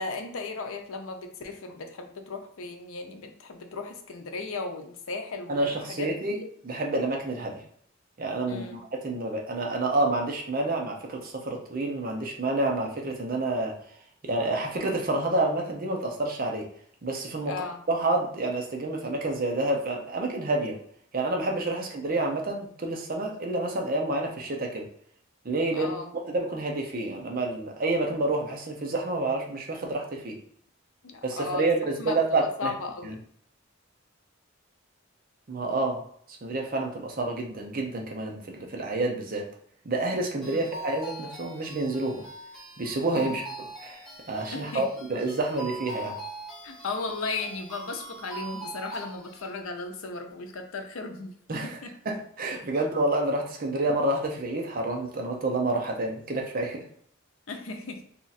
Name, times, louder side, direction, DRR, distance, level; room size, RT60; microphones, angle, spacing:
voice 1, 0.0-6.1 6.4-6.5 8.5-8.8 17.5-17.8 25.7-26.1 31.0-31.7 32.0-33.2 40.5-40.6 43.1-43.3 44.5-44.9 46.6-51.3 51.6-51.9 57.5-58.0, left 3 dB, 85° left, 4 dB, 0.6 m, -36 dB
voice 2, 5.5-6.4 6.6-7.6 8.2-13.8 14.2-16.7 17.0-20.8 21.1-24.9 25.4-25.9 26.3-30.4 31.2-32.7 33.0-33.1 35.5-36.0 36.3-39.4 39.8-42.2 42.8-43.4 43.8-46.2 51.5-51.8 52.1-56.8, right 2 dB, 45° right, 1 dB, 0.6 m, -28 dB
sound 1, 40.4-49.5, right 1 dB, ahead, 0.9 m, -42 dB
2.8 x 2.4 x 4.0 m, 0.66 s
head